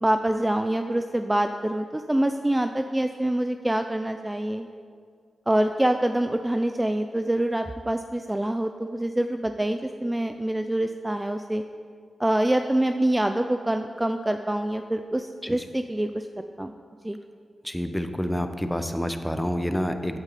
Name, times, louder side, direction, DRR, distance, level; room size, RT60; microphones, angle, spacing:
voice 1, 0.0-4.7 5.5-11.6 12.2-16.3 16.6-16.7 17.0-17.2, right 1 dB, 15° right, 7 dB, 0.5 m, -25 dB
voice 2, 17.6-20.2, equal, 5° left, 7 dB, 0.9 m, -28 dB
13.5 x 8.9 x 4.2 m, 2.1 s
cardioid pair, 55°, 0 cm